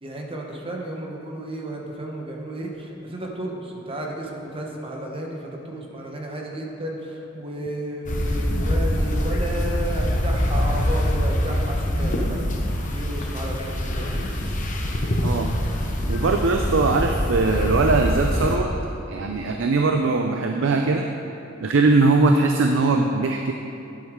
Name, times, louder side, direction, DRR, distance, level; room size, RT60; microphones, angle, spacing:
voice 1, 0.0-12.4 12.7-14.3, right 1 dB, 25° right, 0 dB, 1.1 m, -33 dB
sound 1, 8.1-18.6, equal, 40° left, 0.9 m, -24 dB
voice 2, 16.1-18.7 19.1-21.1 21.6-23.5, right 3 dB, 70° right, 3 dB, 0.5 m, -20 dB
10.5 x 8.6 x 3.7 m, 2.7 s
head